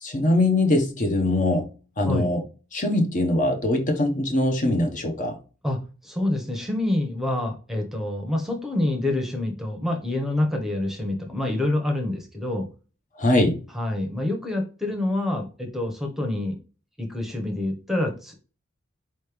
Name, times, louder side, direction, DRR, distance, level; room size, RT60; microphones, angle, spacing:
voice 1, 0.0-1.7 2.0-2.4 2.7-5.4 13.2-13.6, left 1 dB, 40° left, 0.8 m, -22 dB
voice 2, 5.6-12.7 13.7-16.6 17.0-18.3, left 1 dB, ahead, 0.9 m, -27 dB
4.4 x 3.1 x 3.4 m
head